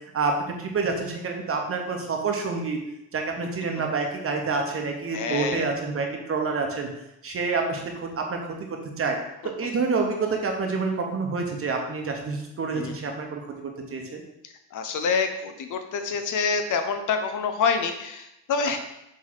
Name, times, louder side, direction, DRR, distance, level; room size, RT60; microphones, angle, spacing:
voice 1, 0.6-2.8 3.1-6.9 7.2-9.2 9.4-14.2, right 4 dB, 35° right, 2 dB, 1.1 m, -28 dB
voice 2, 5.1-5.7 12.7-12.9 14.7-18.8, left 5 dB, 55° left, 6 dB, 0.8 m, -26 dB
7.6 x 3.4 x 4.1 m, 0.85 s
cardioid pair, 120°, 38 cm